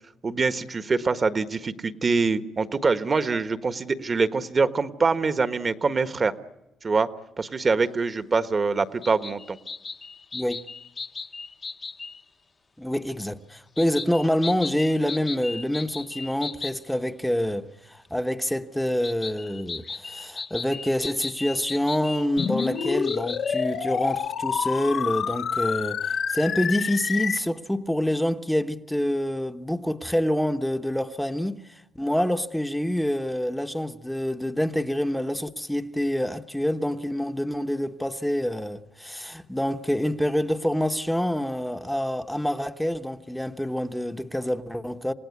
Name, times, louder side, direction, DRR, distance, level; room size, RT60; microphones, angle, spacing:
voice 1, 0.2-6.3 6.8-7.1 7.4-9.6, right 4 dB, 35° right, 1.3 m, -24 dB
sound 1, 9.0-12.2 13.8-16.8 19.0-23.7, left 4 dB, 35° left, 1.2 m, -37 dB
voice 2, 10.3-10.6 12.8-45.1, equal, 5° left, 1.1 m, -27 dB
sound 2, 22.4-27.4, left 7 dB, 60° left, 1.1 m, -27 dB
28.0 x 17.5 x 9.6 m
cardioid pair, 90°, 0 cm